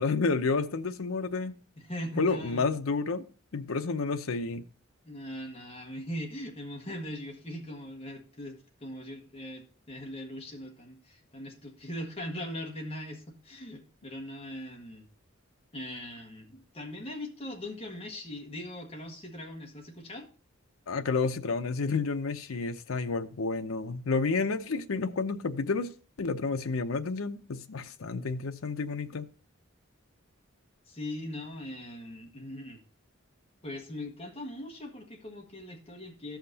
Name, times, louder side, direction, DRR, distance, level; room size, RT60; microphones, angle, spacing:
voice 1, 0.0-1.6 2.2-3.3 3.5-4.6 20.9-25.9 26.2-29.2, left 4 dB, 85° left, 0.7 m, -30 dB
voice 2, 1.8-2.6 5.0-15.0 15.7-20.3 30.9-32.8 33.6-36.4, left 1 dB, 30° left, 1.6 m, -40 dB
14.5 x 5.8 x 2.8 m
head